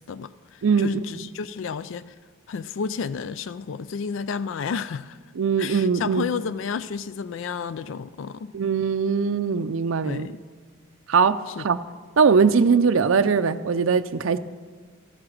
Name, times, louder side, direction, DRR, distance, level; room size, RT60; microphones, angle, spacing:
voice 1, 0.0-2.1 2.5-5.2 5.6-8.5 10.0-10.4 11.6-11.7, left 5 dB, 70° left, 15 dB, 0.4 m, -31 dB
voice 2, 0.6-1.0 5.4-6.2 8.5-10.3 11.1-11.8 12.2-14.4, right 5 dB, 75° right, 8 dB, 0.4 m, -21 dB
15.0 x 10.5 x 6.4 m, 1.5 s
head